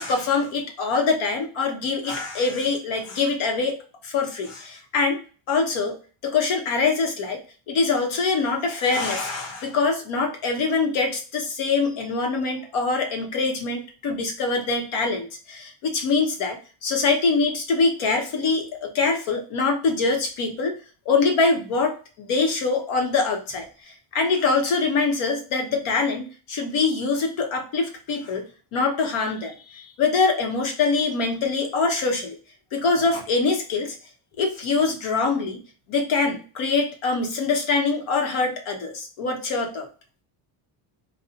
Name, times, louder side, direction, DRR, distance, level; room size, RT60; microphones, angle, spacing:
voice 1, 0.0-3.7 4.0-5.2 5.5-6.0 6.2-7.4 7.7-20.7 21.0-28.4 28.7-32.3 32.7-33.9 34.4-35.6 35.9-39.9, left 4 dB, 75° left, 3 dB, 1.3 m, -24 dB
4.3 x 2.5 x 3.7 m, 0.37 s
cardioid pair, 160°, 48 cm